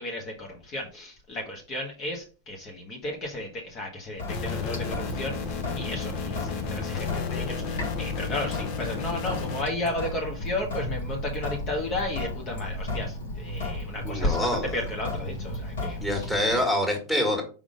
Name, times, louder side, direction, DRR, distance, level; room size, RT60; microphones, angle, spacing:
voice 1, 0.0-16.3, left 2 dB, 35° left, 0 dB, 1.4 m, -33 dB
Sink (filling or washing) / Drip, 4.2-16.6, left 1 dB, 85° left, 3.2 m, -34 dB
sound 1, 4.3-9.6, left 5 dB, 55° left, 1.0 m, -33 dB
voice 2, 14.0-14.7 16.0-17.4, left 1 dB, 5° left, 1 dB, 2.0 m, -25 dB
5.2 x 3.7 x 5.0 m, 0.36 s
hypercardioid pair, 125°, 0 cm